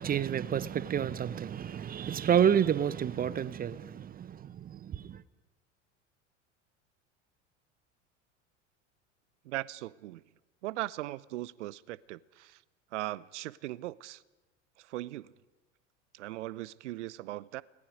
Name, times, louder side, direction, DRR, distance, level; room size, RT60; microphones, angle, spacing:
voice 1, 0.0-5.2, right 9 dB, 25° right, 0.7 m, -29 dB
voice 2, 9.4-10.2 10.6-12.6 12.9-14.2 14.8-15.3 16.1-17.6, right 16 dB, 70° right, 0.7 m, -39 dB
29.0 x 19.5 x 5.2 m
figure-of-eight pair, 80°, 37 cm